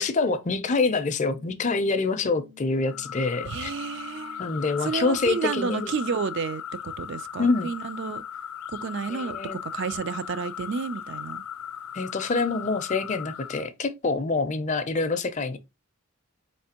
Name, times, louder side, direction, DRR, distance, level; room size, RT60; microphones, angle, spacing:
voice 1, 0.0-3.7 4.4-5.9 7.4-7.7 9.1-9.6 11.9-15.6, left 3 dB, 35° left, 0.4 m, -26 dB
sound 1, 1.2-6.2, left 7 dB, 85° right, 1.1 m, -53 dB
sound 2, 2.8-13.7, left 9 dB, 85° left, 0.5 m, -38 dB
voice 2, 3.4-4.5 4.8-6.6 7.0-8.2 8.7-11.4, right 5 dB, 55° right, 0.3 m, -31 dB
4.3 x 3.2 x 2.8 m
head